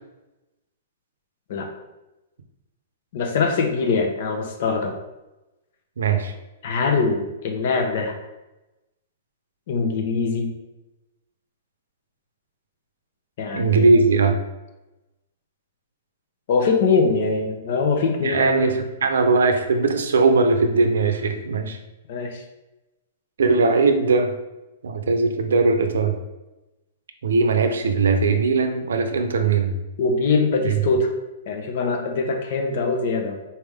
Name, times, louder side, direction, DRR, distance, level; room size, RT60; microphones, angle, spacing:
voice 1, 3.1-4.9 6.6-8.2 9.7-10.5 13.4-13.9 16.5-18.7 22.1-22.4 30.0-31.1 31.5-33.4, left 4 dB, 55° left, 4 dB, 0.8 m, -22 dB
voice 2, 6.0-6.3 13.5-14.4 18.2-21.8 23.4-24.3 24.8-26.1 27.2-29.7 30.7-30.8, right 4 dB, 90° right, 6 dB, 0.6 m, -19 dB
4.3 x 3.4 x 3.5 m, 1.0 s
hypercardioid pair, 155°, 0 cm